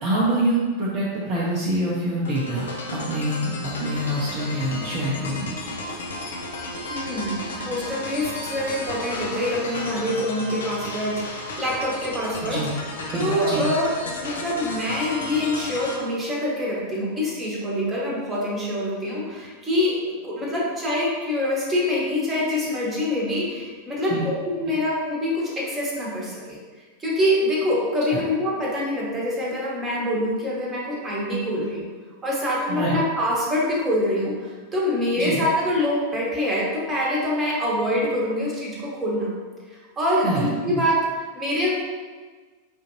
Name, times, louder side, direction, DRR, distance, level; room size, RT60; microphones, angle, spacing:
voice 1, 0.0-5.6 12.4-12.7 13.1-13.7 24.1-24.3 28.1-28.2 32.7-33.0 35.2-35.4 40.2-40.8, right 1 dB, 40° right, -5 dB, 0.6 m, -26 dB
sound 1, 2.2-16.0, left 2 dB, 65° left, 0.5 m, -33 dB
voice 2, 6.9-12.6 13.1-19.9 20.2-26.6 27.0-31.9 32.2-39.3 39.7-41.0 41.3-41.7, left 1 dB, 15° right, -5 dB, 1.2 m, -25 dB
5.2 x 2.5 x 2.8 m, 1.4 s
figure-of-eight pair, 90°, 0 cm